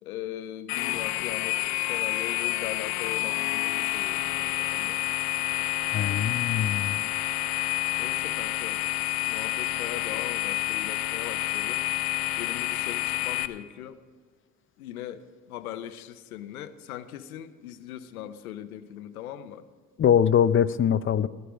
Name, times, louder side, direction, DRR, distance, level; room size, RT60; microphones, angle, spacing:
voice 1, 0.0-5.0 6.9-7.1 8.0-8.8 9.3-11.9 12.4-14.0 14.8-19.7, left 11 dB, 85° left, 13 dB, 0.8 m, -40 dB
sound 1, 0.7-13.5, left 17 dB, 60° left, 0.9 m, -29 dB
voice 2, 5.9-7.0 20.0-21.3, left 9 dB, 30° left, 16 dB, 0.6 m, -22 dB
14.5 x 14.0 x 4.9 m, 1.5 s
hypercardioid pair, 55°, 42 cm